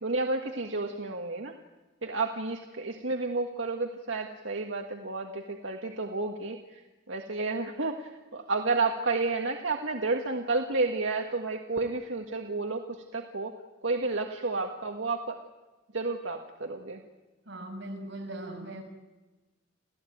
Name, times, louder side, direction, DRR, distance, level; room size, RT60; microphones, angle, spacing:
voice 1, 0.0-1.6 2.0-6.8 7.1-13.5 13.8-15.4 15.9-17.0, right 3 dB, 90° right, 2 dB, 1.8 m, -31 dB
voice 2, 17.4-18.8, right 1 dB, 60° right, 2 dB, 6.3 m, -39 dB
29.0 x 16.0 x 9.3 m, 1.1 s
head